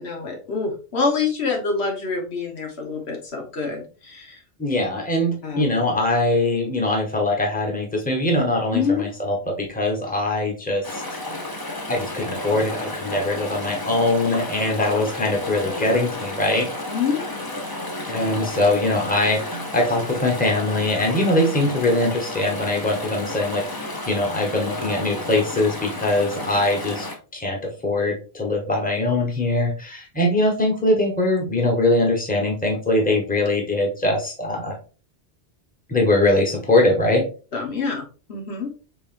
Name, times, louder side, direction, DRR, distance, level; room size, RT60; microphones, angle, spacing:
voice 1, 0.0-4.4 5.4-5.6 8.7-9.0 16.9-17.2 37.5-38.7, left 5 dB, 80° left, 2 dB, 1.3 m, -26 dB
voice 2, 4.6-11.0 11.9-16.7 18.1-34.7 35.9-37.2, left 2 dB, 10° left, 0 dB, 1.1 m, -22 dB
Chatter / Stream, 10.8-27.2, left 1 dB, 25° left, 0.7 m, -32 dB
5.2 x 3.3 x 2.5 m, 0.36 s
omnidirectional pair, 1.1 m